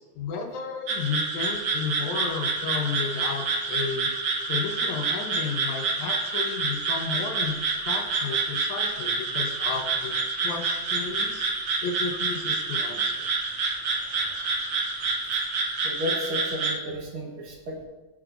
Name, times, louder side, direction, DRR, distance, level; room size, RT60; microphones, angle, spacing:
voice 1, 0.0-4.1 4.5-7.6 7.9-11.5 11.8-13.3, left 5 dB, 75° left, 1 dB, 2.1 m, -33 dB
sound 1, 0.9-16.7, right 4 dB, 75° right, 1.1 m, -28 dB
voice 2, 15.8-17.9, left 1 dB, 55° right, -1 dB, 1.5 m, -33 dB
14.0 x 4.9 x 2.5 m, 1.3 s
omnidirectional pair, 3.5 m